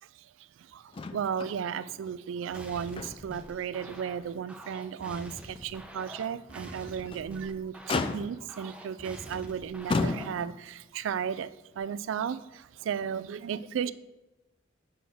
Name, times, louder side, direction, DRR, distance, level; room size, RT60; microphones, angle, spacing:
voice 1, 0.0-13.9, right 7 dB, 75° right, 16 dB, 0.3 m, -35 dB
Motor vehicle (road), 0.9-1.6 1.9-2.0 2.5-3.4 3.9-4.0 4.5-4.6 6.9-7.3 7.9-8.6 9.3-9.5 9.9-10.7 11.8-11.9, left 3 dB, 25° left, 0.3 m, -33 dB
sound 1, 2.5-10.4, equal, 5° right, 0.6 m, -46 dB
7.6 x 6.0 x 3.5 m, 1.0 s
head